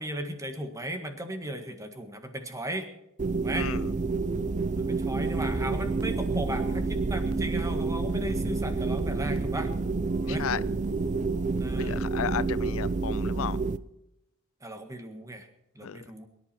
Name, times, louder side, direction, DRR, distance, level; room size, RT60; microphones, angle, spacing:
voice 1, 0.0-2.9 3.4-3.7 4.8-9.7 10.2-10.5 11.6-12.0 14.6-15.5 15.7-16.3, right 1 dB, 15° right, 1.7 m, -36 dB
sound 1, 3.2-13.8, right 3 dB, 35° right, 0.5 m, -29 dB
sound 2, 5.2-12.7, right 2 dB, 75° right, 1.2 m, -41 dB
voice 2, 10.3-10.6 11.8-13.6 15.8-16.0, left 8 dB, 70° left, 0.4 m, -33 dB
22.5 x 10.5 x 4.4 m
head